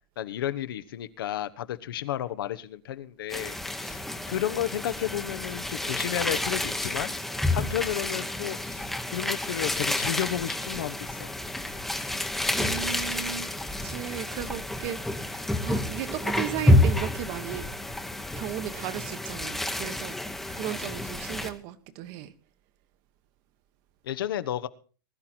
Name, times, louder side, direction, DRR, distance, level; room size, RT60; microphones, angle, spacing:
voice 1, 0.2-4.0 4.3-7.1 7.5-11.3 24.0-24.7, left 12 dB, 65° left, 13 dB, 1.2 m, -32 dB
sound 1, 3.3-21.5, left 1 dB, ahead, 1.1 m, -29 dB
voice 2, 12.5-15.3 15.6-17.7 18.4-20.2 20.5-22.3, right 11 dB, 30° right, 11 dB, 1.2 m, -35 dB
20.5 x 12.0 x 4.5 m, 0.39 s
supercardioid pair, 170°, 13 cm